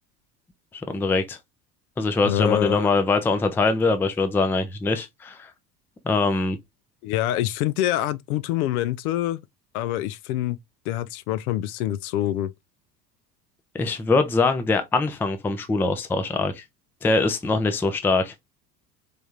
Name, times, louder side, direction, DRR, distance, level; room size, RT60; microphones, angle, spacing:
voice 1, 0.9-1.4 2.0-5.5 6.1-6.6 13.7-16.6 17.0-18.3, left 3 dB, 5° left, 0.4 m, -23 dB
voice 2, 2.2-2.9 7.0-9.4 9.7-10.6 10.9-12.5, left 13 dB, 65° left, 0.5 m, -25 dB
3.5 x 3.4 x 2.7 m
figure-of-eight pair, 70°, 49 cm